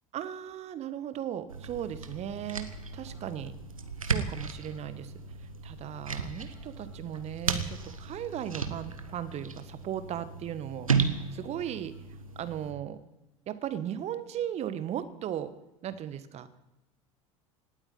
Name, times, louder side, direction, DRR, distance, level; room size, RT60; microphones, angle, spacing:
voice 1, 0.1-2.7 2.9-3.5 4.1-5.1 5.6-11.9 12.3-13.0 13.5-15.5 15.8-16.5, right 10 dB, 40° right, 12 dB, 1.4 m, -37 dB
sound 1, 1.5-12.7, right 5 dB, 85° right, 1.1 m, -35 dB
18.5 x 8.9 x 8.6 m, 0.99 s
figure-of-eight pair, 70°, 17 cm